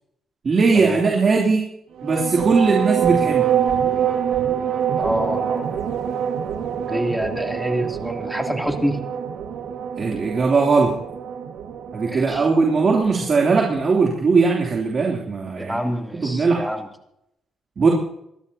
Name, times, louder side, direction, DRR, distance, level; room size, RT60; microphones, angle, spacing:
voice 1, 0.4-1.6 2.0-3.5 10.0-10.9 11.9-15.8 16.1-16.7 17.8-17.9, right 4 dB, 45° right, -2 dB, 2.9 m, -19 dB
sound 1, 2.0-13.9, right 8 dB, 80° right, 1.6 m, -25 dB
voice 2, 5.0-5.7 6.9-9.0 12.1-12.5 15.6-16.9, equal, ahead, 2 dB, 2.8 m, -26 dB
26.5 x 13.0 x 2.8 m, 0.78 s
cardioid pair, 90°, 0 cm